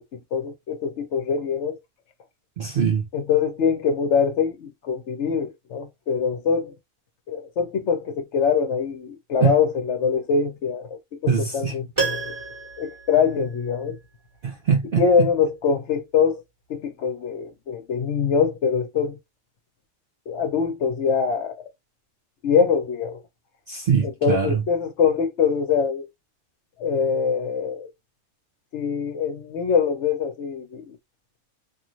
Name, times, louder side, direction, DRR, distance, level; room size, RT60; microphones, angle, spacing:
voice 1, 0.1-1.8 3.1-6.7 7.3-12.3 12.8-14.0 15.0-16.4 16.7-19.2 20.3-21.6 22.4-23.2 24.0-26.1 26.8-27.9 28.7-31.0, left 6 dB, 65° left, 0.9 m, -23 dB
voice 2, 2.6-3.0 9.4-9.6 11.3-11.7 14.4-15.3 23.7-24.6, right 7 dB, 65° right, 0.5 m, -22 dB
Piano, 12.0-14.0 14.3-14.4, right 4 dB, 25° right, 0.9 m, -30 dB
3.0 x 2.4 x 2.5 m
omnidirectional pair, 1.4 m